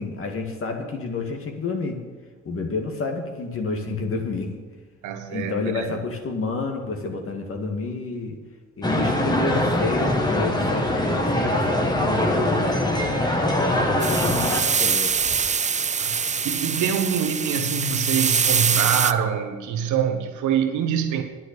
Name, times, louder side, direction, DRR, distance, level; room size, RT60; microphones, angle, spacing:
voice 1, 0.0-2.0 2.5-4.5 5.3-8.4 8.8-15.1, left 3 dB, 45° left, 3 dB, 2.2 m, -29 dB
voice 2, 5.0-6.0 16.0-21.2, right 8 dB, 80° right, 6 dB, 1.4 m, -25 dB
sound 1, 8.8-14.6, left 1 dB, 15° left, 1.9 m, -22 dB
sound 2, 14.0-19.1, right 6 dB, 25° right, 0.5 m, -24 dB
9.8 x 9.2 x 6.9 m, 1.5 s
supercardioid pair, 75°, 29 cm